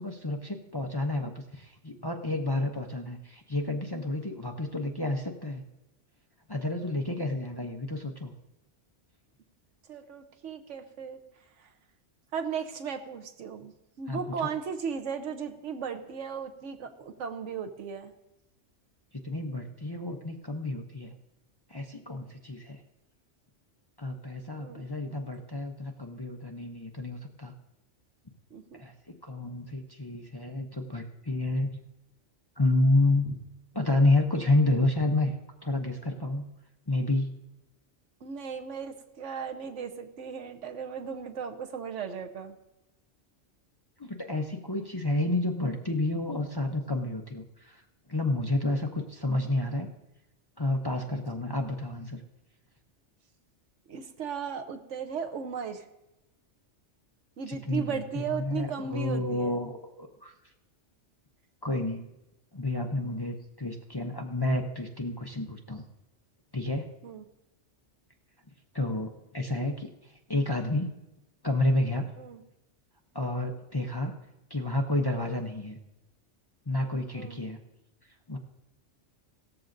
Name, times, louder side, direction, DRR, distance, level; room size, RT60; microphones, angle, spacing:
voice 1, 0.0-5.6 6.5-8.3 14.1-14.3 19.2-21.1 21.7-22.8 24.0-27.5 28.7-31.7 32.6-33.4 33.7-35.3 35.6-36.4 36.9-37.3 44.0-47.8 48.1-49.9 50.6-52.2 57.5-60.3 61.6-62.1 62.5-65.8 66.5-66.9 68.7-70.9 71.4-72.1 73.1-74.1 74.5-75.8 76.7-77.6 78.3-78.4, left 2 dB, 25° left, 3 dB, 0.6 m, -30 dB
voice 2, 9.9-11.2 12.3-18.1 24.6-24.9 28.5-28.8 38.2-42.6 53.9-55.8 57.4-59.6 67.0-67.2 72.2-72.4 77.1-77.4, right 6 dB, 80° right, 7 dB, 1.2 m, -36 dB
17.0 x 13.5 x 2.6 m, 0.93 s
omnidirectional pair, 1.2 m